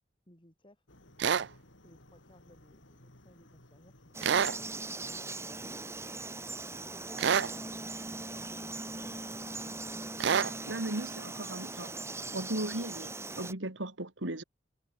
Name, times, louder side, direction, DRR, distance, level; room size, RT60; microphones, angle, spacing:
voice 1, 0.3-0.9 1.8-4.9 8.5-9.8, left 1 dB, 30° left, 7.7 m, -60 dB
sound 1, 0.9-11.0, left 1 dB, 85° left, 7.0 m, -59 dB
sound 2, 1.2-1.5 4.2-4.6 7.2-7.5 10.2-10.5, right 7 dB, 70° right, 0.5 m, -27 dB
Frog, 4.1-13.5, right 2 dB, 15° right, 3.8 m, -40 dB
voice 2, 10.6-11.9 12.3-14.4, right 1 dB, 85° right, 2.9 m, -36 dB
head